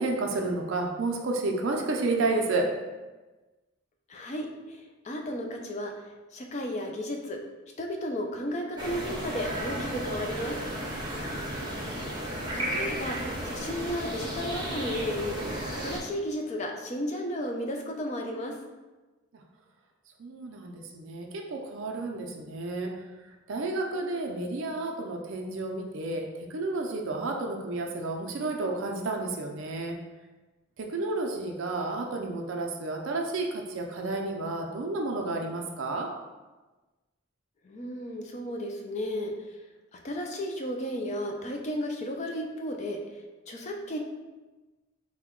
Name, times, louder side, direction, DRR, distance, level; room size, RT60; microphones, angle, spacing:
voice 1, 0.0-2.7 20.2-22.9 23.5-30.0 30.8-36.1, right 2 dB, 65° right, 2 dB, 0.4 m, -31 dB
voice 2, 4.1-4.8 5.0-5.9 6.3-7.4 7.8-10.6 12.5-13.2 13.4-15.4 15.8-18.5 37.6-39.3 40.0-43.0 43.5-44.0, equal, 30° left, 2 dB, 0.4 m, -33 dB
sound 1, 8.8-16.0, right 1 dB, 20° right, 0.6 m, -34 dB
3.7 x 2.2 x 3.6 m, 1.2 s
head